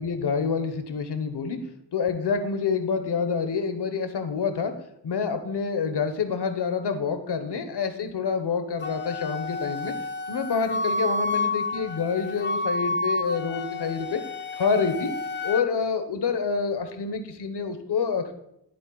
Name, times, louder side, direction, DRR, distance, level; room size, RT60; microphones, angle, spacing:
voice 1, 0.0-1.6 1.9-4.7 5.0-9.9 10.3-14.2 14.5-15.1 15.4-18.3, left 5 dB, 70° left, 8 dB, 0.9 m, -27 dB
Wind instrument woodwind instrument, 8.8-15.6, left 2 dB, 30° left, 0.3 m, -30 dB
11.0 x 3.8 x 3.8 m, 0.80 s
wide cardioid pair, 115°, 42 cm